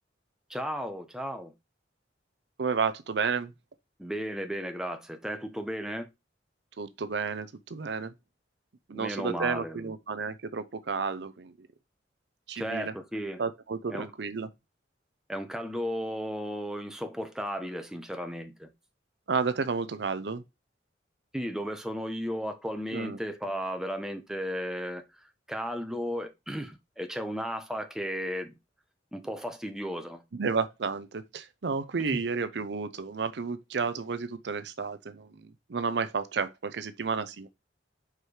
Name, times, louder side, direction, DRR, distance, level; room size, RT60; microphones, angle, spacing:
voice 1, 0.5-1.5 4.0-6.1 8.9-9.9 12.5-13.4 13.9-14.1 15.3-18.7 21.3-25.0 25.5-28.5 29.1-30.2 32.1-32.2, equal, 5° right, 0.9 m, -34 dB
voice 2, 2.6-3.5 6.8-8.1 8.9-11.7 12.5-12.9 13.4-14.5 19.3-20.4 22.9-23.2 30.3-37.5, right 5 dB, 65° right, 0.6 m, -31 dB
4.8 x 4.5 x 4.8 m
head